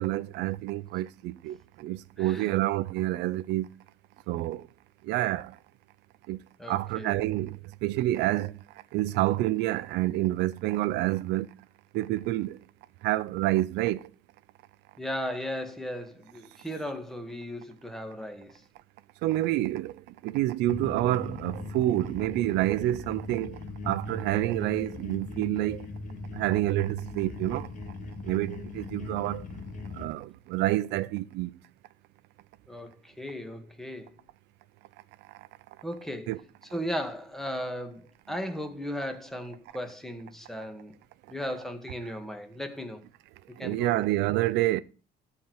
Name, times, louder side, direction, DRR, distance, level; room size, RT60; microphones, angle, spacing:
voice 1, 0.0-3.7 4.3-4.7 5.0-5.6 6.3-6.4 6.7-8.6 8.9-11.5 11.9-12.6 13.0-14.1 19.2-23.6 23.8-25.9 26.3-27.7 28.2-29.5 29.9-31.6 36.3-36.4 43.6-44.8, right 16 dB, 90° right, 0.7 m, -28 dB
voice 2, 2.2-2.5 6.6-7.2 15.0-18.6 32.7-34.2 35.8-36.4 36.7-40.9 41.3-43.0 43.5-44.1, equal, ahead, 1.9 m, -36 dB
sound 1, 20.7-30.1, left 3 dB, 50° left, 2.1 m, -39 dB
13.0 x 4.6 x 8.1 m
cardioid pair, 110°, 17 cm